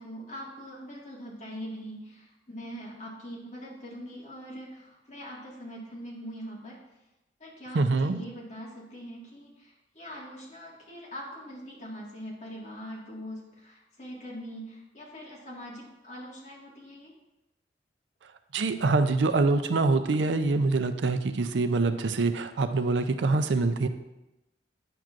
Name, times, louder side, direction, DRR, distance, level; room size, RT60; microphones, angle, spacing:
voice 1, 0.0-6.8 7.4-17.1, equal, 45° left, -4 dB, 1.8 m, -42 dB
voice 2, 7.7-8.2 18.5-23.9, right 3 dB, 85° right, 9 dB, 0.5 m, -25 dB
9.1 x 6.0 x 2.5 m, 0.95 s
head